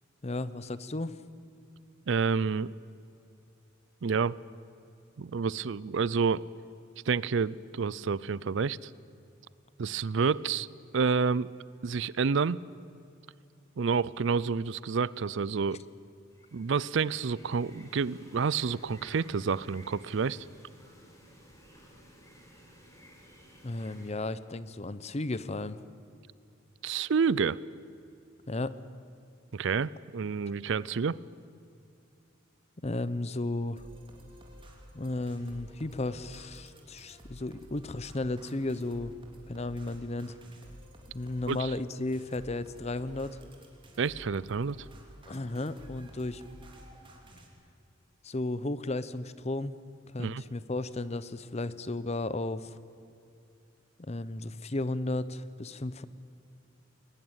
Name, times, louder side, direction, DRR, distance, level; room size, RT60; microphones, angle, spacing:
voice 1, 0.2-1.2 23.6-25.8 28.5-28.8 32.8-33.8 34.9-39.1 39.5-40.4 41.1-43.4 45.3-46.4 48.2-49.7 50.1-52.7 54.0-56.0, left 2 dB, 30° left, 15 dB, 0.7 m, -34 dB
voice 2, 2.1-2.7 4.0-4.4 5.2-6.5 7.1-8.9 9.8-10.7 10.9-11.5 11.8-12.6 13.8-15.8 16.5-20.4 26.8-27.6 29.5-31.2 41.5-41.7 44.0-44.8 50.2-50.4, right 5 dB, 60° right, 21 dB, 0.5 m, -29 dB
sound 1, 16.3-24.1, equal, 15° left, 4.7 m, -55 dB
sound 2, 33.8-47.5, equal, 25° right, 3.2 m, -52 dB
21.5 x 19.5 x 8.9 m, 2.6 s
head